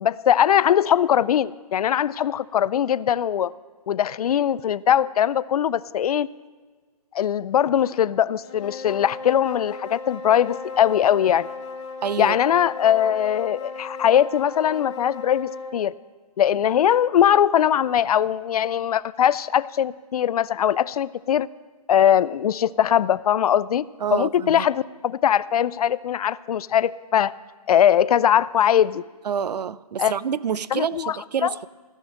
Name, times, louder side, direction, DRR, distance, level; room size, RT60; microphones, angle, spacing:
voice 1, 0.0-3.5 3.9-6.3 7.1-11.5 12.2-15.9 16.4-21.5 21.9-23.9 24.1-27.3 27.7-29.0 30.0-30.1 30.7-31.2 31.4-31.5, left 10 dB, 65° left, 19 dB, 0.4 m, -21 dB
sound 1, 8.4-15.8, left 4 dB, 45° left, 1.3 m, -36 dB
voice 2, 12.0-12.4 24.0-24.7 29.2-31.7, right 7 dB, 90° right, 19 dB, 0.5 m, -27 dB
15.5 x 6.6 x 7.4 m, 1.4 s
hypercardioid pair, 150°, 20 cm